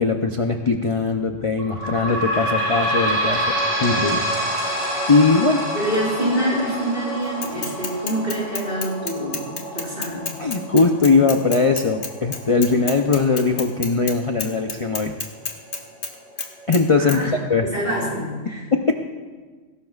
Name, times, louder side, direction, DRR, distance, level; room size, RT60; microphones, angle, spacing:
voice 1, 0.0-3.4 3.8-4.2 5.1-5.7 10.4-15.1 16.7-17.7 18.9-19.0, left 4 dB, 35° left, 4 dB, 0.6 m, -20 dB
sound 1, 1.6-14.7 15.3-15.4 15.7-15.8 16.6-16.7, right 1 dB, 70° right, 5.9 m, -28 dB
voice 2, 5.7-9.5 9.7-10.4 17.0-17.4 17.6-18.7, right 1 dB, 50° right, -6 dB, 5.7 m, -26 dB
Bicycle / Mechanisms, 7.4-14.1 14.4-16.1 16.4-16.8 17.1-17.2, left 5 dB, 85° left, 1.6 m, -30 dB
20.0 x 17.0 x 2.4 m, 1.4 s
omnidirectional pair, 1.3 m